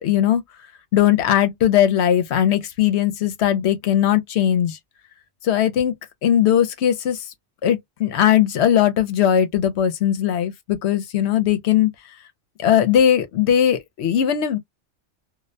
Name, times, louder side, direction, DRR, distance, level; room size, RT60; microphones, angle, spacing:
voice 1, 0.0-0.4 0.9-4.8 5.4-6.0 6.2-7.3 7.6-11.9 12.6-14.6, left 10 dB, 75° left, 0.8 m, -19 dB
2.3 x 2.1 x 2.5 m
omnidirectional pair, 1.2 m